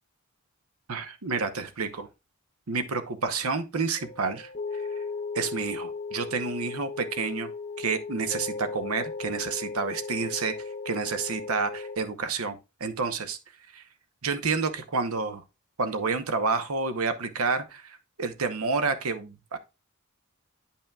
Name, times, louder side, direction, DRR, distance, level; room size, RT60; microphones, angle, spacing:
voice 1, 0.9-2.1 2.7-4.9 5.3-7.5 7.8-10.5 10.8-13.4 13.7-13.8 14.2-15.4 15.8-19.6, right 4 dB, 80° right, 0.9 m, -29 dB
sound 1, 4.0-12.0, left 4 dB, 30° left, 0.6 m, -36 dB
10.5 x 5.6 x 2.3 m
head